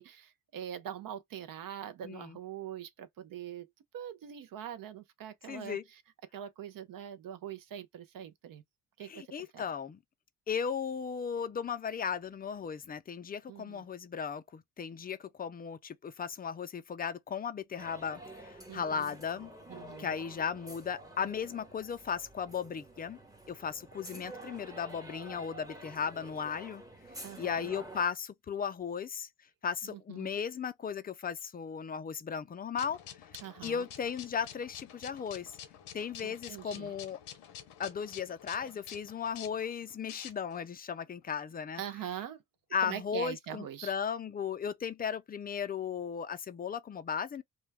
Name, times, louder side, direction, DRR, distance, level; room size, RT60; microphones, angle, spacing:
voice 1, 0.0-3.7 3.9-6.0 6.3-8.6 9.0-9.6 13.5-13.9 18.7-19.2 19.7-20.2 27.2-27.7 29.8-30.3 33.4-33.9 36.2-36.9 41.8-42.4 42.8-43.9, right 10 dB, 55° right, 0.6 m, -43 dB
voice 2, 2.0-2.4 5.5-5.8 9.0-10.0 10.5-19.5 20.0-23.2 23.5-26.8 27.4-29.3 29.6-33.0 33.6-35.5 35.9-37.2 37.8-41.8 42.7-47.4, left 7 dB, 25° left, 0.4 m, -36 dB
sound 1, 17.8-28.0, right 1 dB, 10° right, 0.9 m, -49 dB
sound 2, 32.8-40.6, left 10 dB, 75° left, 0.8 m, -49 dB
2.2 x 2.2 x 3.3 m
supercardioid pair, 65°, 41 cm